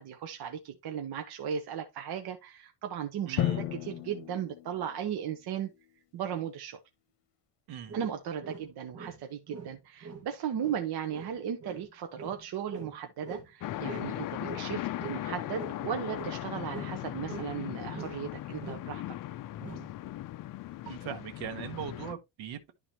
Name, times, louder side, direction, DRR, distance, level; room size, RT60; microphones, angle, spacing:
voice 1, 0.0-5.7 6.1-6.8 7.9-19.0, right 8 dB, 55° right, 1.0 m, -36 dB
voice 2, 3.2-3.6 7.7-8.0 20.8-22.7, right 9 dB, 90° right, 1.3 m, -40 dB
Drum, 3.4-5.3, left 12 dB, 65° left, 1.0 m, -34 dB
sound 1, 7.9-9.2 9.5-13.5 13.9-15.8 16.1-17.6 17.9-18.3 18.6-18.9 19.6-20.0, right 5 dB, 30° right, 1.4 m, -44 dB
sound 2, 13.6-22.1, left 14 dB, 50° left, 0.5 m, -38 dB
11.5 x 3.9 x 2.9 m
cardioid pair, 140°, 45 cm